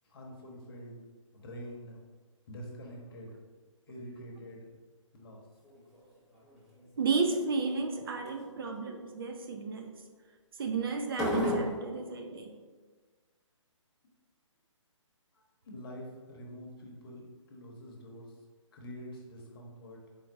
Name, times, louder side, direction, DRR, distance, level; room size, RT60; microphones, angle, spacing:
voice 1, 0.0-0.9 1.3-2.0 2.5-3.3 3.9-4.7 5.1-5.4 15.3-18.3 18.7-20.0, equal, 45° left, -1 dB, 1.0 m, -46 dB
sound 1, 5.6-6.0 6.3-6.9 7.4-7.8 8.3-8.5 11.1-11.9, equal, ahead, 0.8 m, -32 dB
voice 2, 7.0-9.9 10.6-12.6, right 4 dB, 45° right, 4 dB, 0.5 m, -33 dB
4.4 x 3.9 x 2.5 m, 1.4 s
hypercardioid pair, 150°, 17 cm